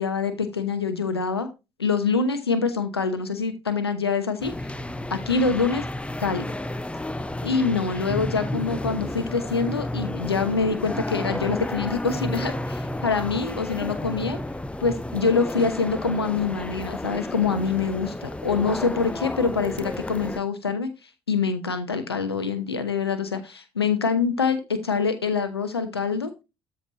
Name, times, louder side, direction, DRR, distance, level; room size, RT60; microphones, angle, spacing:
voice 1, 0.0-1.5 1.8-4.5 5.1-5.8 6.2-6.5 7.4-14.4 14.8-20.9 21.3-26.3, left 5 dB, 85° left, 10 dB, 1.0 m, -25 dB
sound 1, 4.4-20.4, left 1 dB, 10° left, 0.8 m, -32 dB
13.5 x 4.5 x 2.9 m, 0.24 s
figure-of-eight pair, 50°, 13 cm